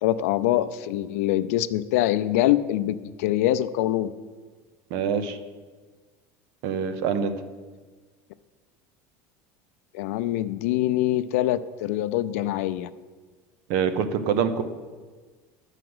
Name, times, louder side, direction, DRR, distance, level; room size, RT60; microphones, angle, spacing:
voice 1, 0.0-4.1 9.9-12.9, left 13 dB, 85° left, 13 dB, 0.5 m, -24 dB
voice 2, 4.9-5.4 6.6-7.4 13.7-14.6, right 7 dB, 55° right, 10 dB, 0.8 m, -25 dB
11.0 x 5.0 x 7.8 m, 1.4 s
cardioid pair, 170°, 8 cm